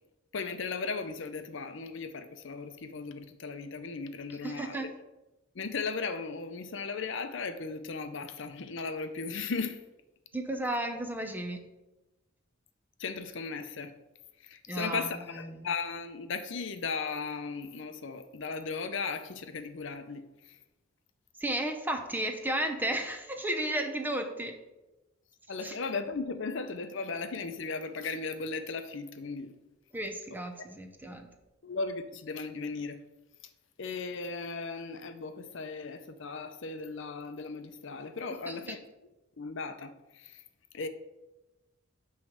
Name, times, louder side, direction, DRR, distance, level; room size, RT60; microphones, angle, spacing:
voice 1, 0.3-4.9 5.5-9.8 13.0-13.9 14.4-20.6 25.5-29.5 30.3-30.4 31.6-33.0 33.8-38.8 39.4-40.4 40.7-40.9, left 4 dB, 65° left, 0.6 m, -36 dB
voice 2, 4.4-4.9 10.3-11.6 14.7-15.7 21.4-24.6 25.6-25.8 29.9-31.3 38.4-38.8, right 1 dB, 10° right, 0.7 m, -34 dB
9.3 x 3.2 x 6.4 m
head